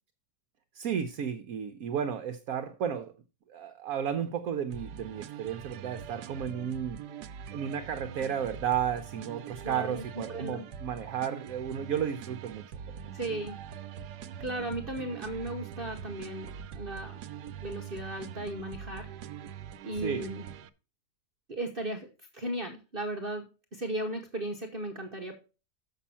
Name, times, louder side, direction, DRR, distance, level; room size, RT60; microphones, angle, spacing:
voice 1, 0.7-3.1 3.5-7.0 7.5-12.6 13.0-13.2 20.0-20.3, right 8 dB, 65° right, 1.1 m, -33 dB
sound 1, 4.7-20.7, right 8 dB, 90° right, 1.2 m, -43 dB
voice 2, 9.6-10.6 13.1-13.5 14.4-17.1 17.6-19.1 19.8-20.4 21.5-23.4 23.7-25.3, right 1 dB, 40° right, 1.1 m, -36 dB
7.3 x 6.1 x 5.5 m
omnidirectional pair, 1.7 m